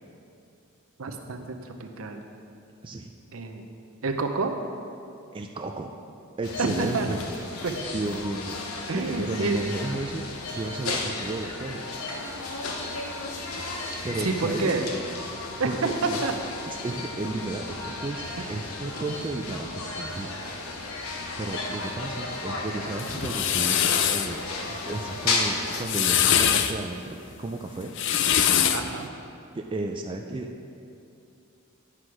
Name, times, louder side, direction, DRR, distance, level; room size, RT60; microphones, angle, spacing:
voice 1, 1.0-2.2 3.3-3.7 4.0-4.5 6.6-7.1 7.6-7.7 8.9-9.6 14.2-14.8 15.6-15.7 16.2-16.3 28.7-29.1, right 3 dB, 70° right, 5 dB, 0.7 m, -28 dB
voice 2, 5.3-5.9 6.4-7.2 7.9-8.6 8.9-12.0 14.0-14.9 15.6-16.3 16.8-18.2 18.5-20.3 20.8-23.8 24.1-27.9 29.5-30.5, right 2 dB, 25° right, 3 dB, 0.3 m, -33 dB
sound 1, 6.4-25.8, left 3 dB, 80° left, 0.9 m, -34 dB
sound 2, 23.0-24.3 25.7-26.7 27.8-28.9, left 9 dB, 55° left, 0.4 m, -23 dB
9.9 x 6.0 x 4.8 m, 2.6 s
head